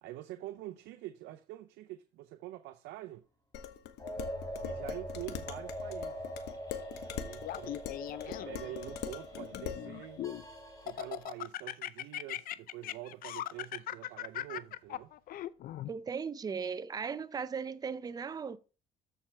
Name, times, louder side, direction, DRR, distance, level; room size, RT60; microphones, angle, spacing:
voice 1, 0.0-3.3 4.6-6.2 7.0-7.8 8.2-10.2 10.8-15.1, right 15 dB, 85° right, 0.5 m, -46 dB
Dishes pots and pans, 3.5-9.9, left 10 dB, 85° left, 1.0 m, -43 dB
sound 1, 4.0-11.2, equal, 20° left, 2.9 m, -43 dB
Laughter, 7.4-8.7 9.3-10.4 10.9-15.9, left 13 dB, 60° left, 0.5 m, -39 dB
voice 2, 15.9-18.6, right 6 dB, 20° right, 0.5 m, -37 dB
13.5 x 4.5 x 3.3 m
cardioid pair, 110°, 17 cm